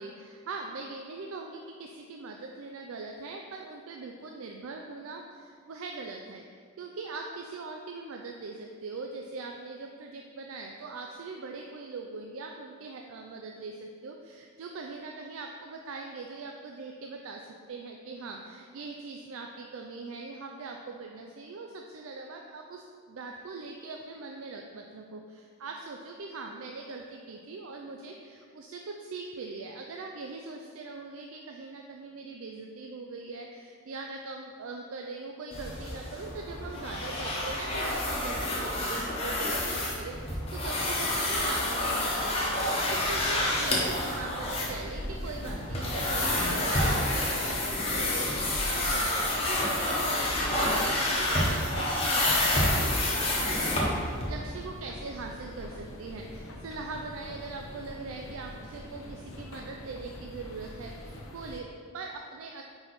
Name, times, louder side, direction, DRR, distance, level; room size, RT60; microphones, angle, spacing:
voice 1, 0.0-53.5 53.8-62.6, right 3 dB, 75° right, 2 dB, 0.4 m, -41 dB
sound 1, 35.5-54.3, left 1 dB, 30° left, 1.0 m, -29 dB
sound 2, 42.9-61.6, left 1 dB, 75° left, 0.8 m, -45 dB
5.1 x 4.7 x 4.2 m, 2.1 s
head